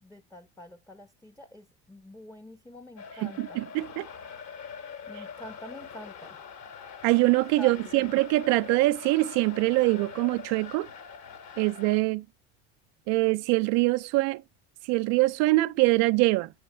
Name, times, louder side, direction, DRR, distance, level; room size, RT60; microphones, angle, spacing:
voice 1, 0.0-3.6 5.1-6.4 7.6-7.7 8.0-8.1, left 1 dB, 10° left, 0.8 m, -46 dB
sound 1, 3.0-12.0, left 6 dB, 60° left, 2.6 m, -43 dB
voice 2, 3.2-4.1 7.0-10.9 11.6-12.2 13.1-14.4 14.8-16.5, right 21 dB, 55° right, 0.4 m, -24 dB
8.5 x 6.9 x 4.2 m
supercardioid pair, 120°, 31 cm